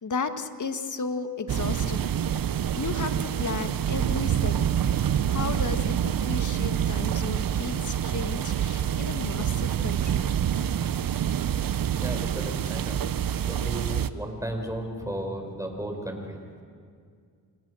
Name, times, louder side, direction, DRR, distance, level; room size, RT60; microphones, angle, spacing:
voice 1, 0.0-2.1 2.7-4.8 5.3-10.2, left 4 dB, 45° left, 8 dB, 1.7 m, -34 dB
sound 1, 1.5-14.1, right 9 dB, 55° right, 0.8 m, -27 dB
voice 2, 12.0-13.0 13.3-16.4, right 1 dB, 10° right, 3 dB, 5.2 m, -34 dB
28.0 x 18.0 x 6.4 m, 2.2 s
supercardioid pair, 50°, 41 cm